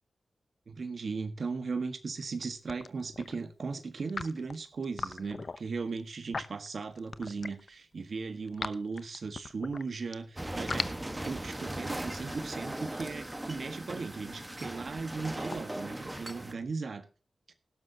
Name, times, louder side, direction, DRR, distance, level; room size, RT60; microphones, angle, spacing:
voice 1, 0.7-10.9 11.1-17.0, right 4 dB, 70° right, 8 dB, 1.5 m, -37 dB
sound 1, 2.2-2.4 2.7-3.4 4.0-7.7 8.1-10.2 10.5-16.6, left 4 dB, 55° left, 0.8 m, -41 dB
sound 2, 10.4-16.5, right 1 dB, 15° right, 1.4 m, -38 dB
18.0 x 12.5 x 2.9 m, 0.35 s
cardioid pair, 65°, 0 cm